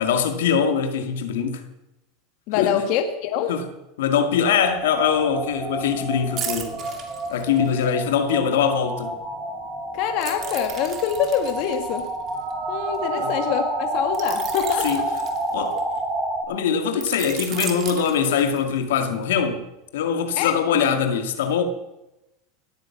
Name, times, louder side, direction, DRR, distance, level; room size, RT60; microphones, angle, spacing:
voice 1, 0.0-1.6 2.5-2.7 3.5-3.6 4.0-6.8 7.3-9.1 13.2-13.3 14.8-15.1 15.5-15.7 16.5-19.6 19.9-21.6, left 7 dB, 85° left, 2.1 m, -22 dB
voice 2, 2.5-3.6 9.9-12.1 12.7-15.1 15.7-15.8 20.4-20.5, left 9 dB, 55° left, 1.6 m, -25 dB
sound 1, 4.6-16.4, right 2 dB, 20° right, 6.0 m, -29 dB
sound 2, 6.4-7.9 10.2-13.0 14.1-16.0 17.0-18.8 19.3-19.5, right 8 dB, 40° right, 2.7 m, -35 dB
19.0 x 9.4 x 7.2 m
supercardioid pair, 125°, 0 cm